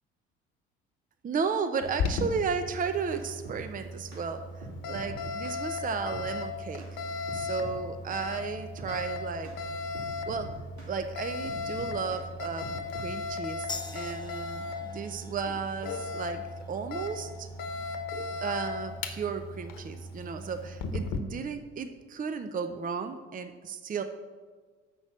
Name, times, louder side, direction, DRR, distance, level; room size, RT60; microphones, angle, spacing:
voice 1, 1.2-6.9 7.3-9.5 10.3-10.5 10.9-17.5 18.4-24.0, right 5 dB, 25° right, 8 dB, 0.7 m, -34 dB
Alarm, 1.8-21.2, left 3 dB, 60° left, 1.0 m, -36 dB
sound 1, 2.8-3.6 4.1-4.3 4.6-5.6 6.1-6.3 6.8-6.9 7.3-7.8 8.1-8.3 8.8-9.0 9.4-9.6 9.9-11.0 11.4-12.3 12.6-13.1, right 1 dB, 50° right, 2.9 m, -44 dB
sound 2, 13.7-20.8, left 3 dB, 10° left, 0.8 m, -47 dB
6.8 x 6.1 x 7.4 m, 1.4 s
figure-of-eight pair, 55°, 36 cm